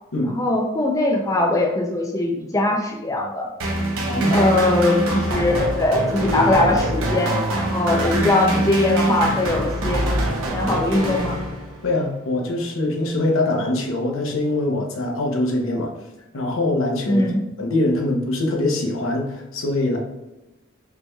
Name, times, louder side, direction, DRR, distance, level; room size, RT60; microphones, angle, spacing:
voice 1, 0.3-3.5 4.3-10.2 10.5-11.4 17.1-17.4, left 2 dB, 15° left, 1 dB, 0.3 m, -21 dB
sound 1, 3.6-11.9, right 1 dB, 80° right, 0.9 m, -24 dB
voice 2, 4.1-4.5 11.8-15.9 16.3-17.3 17.6-20.0, left 2 dB, 80° left, 1 dB, 0.8 m, -23 dB
5.1 x 3.1 x 2.2 m, 0.98 s
head